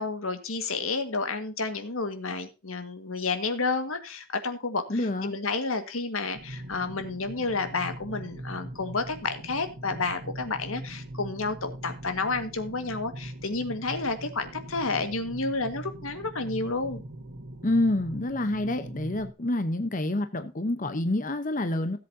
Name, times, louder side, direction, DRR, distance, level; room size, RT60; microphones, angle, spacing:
voice 1, 0.0-17.0, left 3 dB, 85° left, 1.8 m, -30 dB
voice 2, 4.9-5.3 17.6-22.0, left 1 dB, 40° left, 0.9 m, -27 dB
sound 1, 6.3-19.3, right 1 dB, 70° right, 1.8 m, -41 dB
17.5 x 7.9 x 2.8 m
head